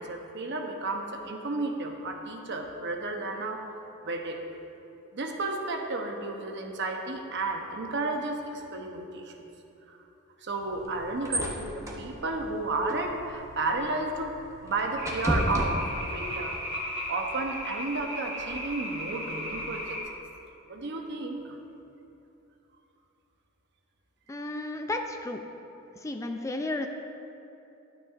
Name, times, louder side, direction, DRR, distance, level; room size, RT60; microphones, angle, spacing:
voice 1, 0.0-3.6 4.0-4.4 5.1-9.3 9.9-10.0 10.4-14.3 14.6-16.6 16.9-20.2 20.7-21.6, right 2 dB, 55° right, 3 dB, 0.9 m, -32 dB
sound 1, 10.6-16.3, equal, 15° right, 1.0 m, -35 dB
sound 2, 15.0-20.0, equal, 30° right, 2.1 m, -36 dB
voice 2, 24.3-25.4 25.9-26.9, left 2 dB, 15° left, 5 dB, 0.4 m, -33 dB
12.0 x 9.2 x 2.5 m, 2.9 s
head